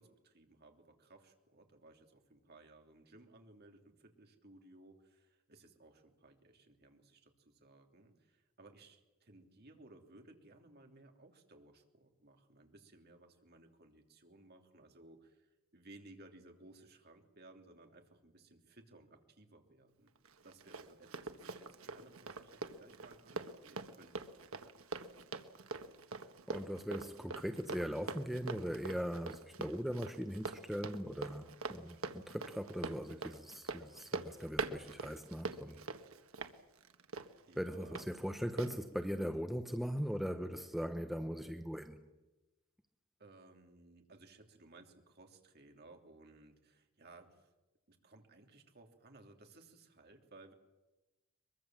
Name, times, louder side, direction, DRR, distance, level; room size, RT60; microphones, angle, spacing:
voice 1, 0.0-20.1 20.4-24.4 37.5-38.1 43.2-47.5 47.9-50.5, right 2 dB, 50° right, 3.0 m, -60 dB
Run, 20.3-38.1 38.6-38.7, right 3 dB, 75° right, 1.5 m, -44 dB
voice 2, 26.5-35.8 37.6-42.0, equal, ahead, 1.0 m, -40 dB
23.0 x 23.0 x 7.5 m
head